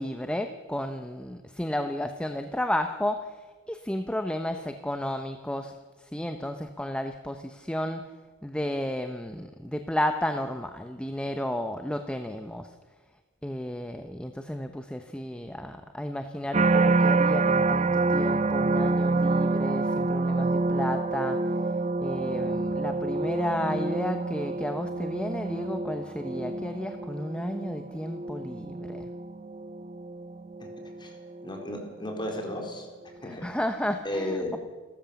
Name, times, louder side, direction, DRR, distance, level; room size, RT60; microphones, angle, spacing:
voice 1, 0.0-3.4 3.7-5.7 6.1-8.0 8.4-12.7 13.4-21.4 22.0-29.1 33.2-34.6, left 1 dB, 5° left, 6 dB, 0.9 m, -32 dB
sound 1, 16.5-31.7 32.2-32.7, right 3 dB, 35° right, 0.6 m, -27 dB
voice 2, 31.4-32.9 33.2-33.4 34.0-34.6, left 1 dB, 25° left, 2 dB, 4.3 m, -33 dB
29.0 x 14.0 x 7.1 m, 1.4 s
head